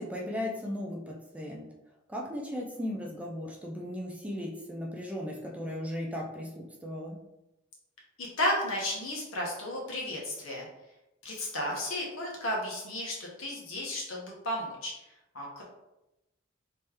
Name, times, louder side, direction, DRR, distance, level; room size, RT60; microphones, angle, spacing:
voice 1, 0.0-1.7 2.1-7.2, left 1 dB, 5° right, -1 dB, 0.5 m, -36 dB
voice 2, 8.2-10.7 11.2-14.9 15.3-15.6, left 1 dB, 90° left, -2 dB, 1.2 m, -33 dB
3.2 x 3.0 x 3.4 m, 0.92 s
head